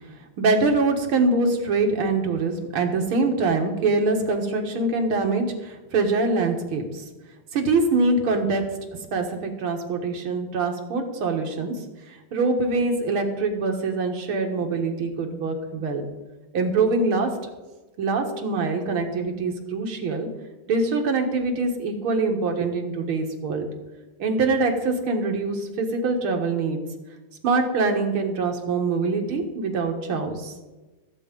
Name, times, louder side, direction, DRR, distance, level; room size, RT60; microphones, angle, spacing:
voice 1, 0.4-7.0 7.5-8.6 9.1-11.7 12.1-16.0 16.5-17.3 18.0-20.3 20.7-23.7 24.2-26.8 27.4-30.5, right 3 dB, 85° right, 3 dB, 2.4 m, -24 dB
15.5 x 7.9 x 5.3 m, 1.2 s
omnidirectional pair, 2.3 m